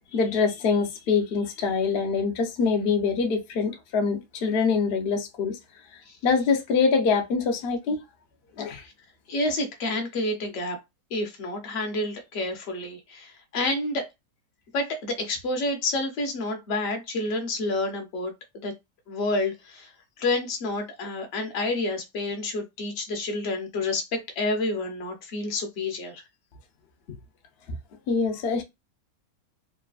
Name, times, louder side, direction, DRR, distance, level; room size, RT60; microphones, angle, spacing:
voice 1, 0.1-5.6 6.2-8.0 8.6-8.8 28.1-28.6, left 5 dB, 80° left, 0.5 m, -24 dB
voice 2, 9.3-10.8 11.1-14.0 14.7-18.7 19.1-19.9 20.2-26.2, left 2 dB, 55° left, 0.8 m, -29 dB
3.1 x 2.2 x 2.3 m
omnidirectional pair, 1.9 m